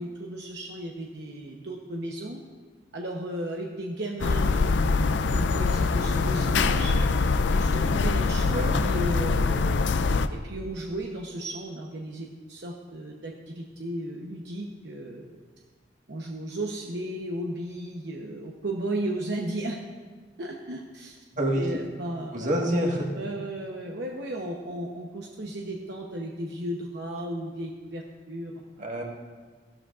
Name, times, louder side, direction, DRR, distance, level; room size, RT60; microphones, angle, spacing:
voice 1, 0.0-2.4 2.9-6.9 7.5-9.8 10.3-15.3 16.1-19.8 20.4-21.2 21.6-22.7 23.1-28.5, right 1 dB, 65° right, -1 dB, 0.9 m, -35 dB
sound 1, 4.2-10.3, left 4 dB, 80° left, 0.5 m, -24 dB
voice 2, 21.3-21.7 22.3-23.1 28.8-29.0, right 1 dB, 45° right, 0 dB, 1.7 m, -26 dB
15.5 x 12.5 x 2.5 m, 1.5 s
head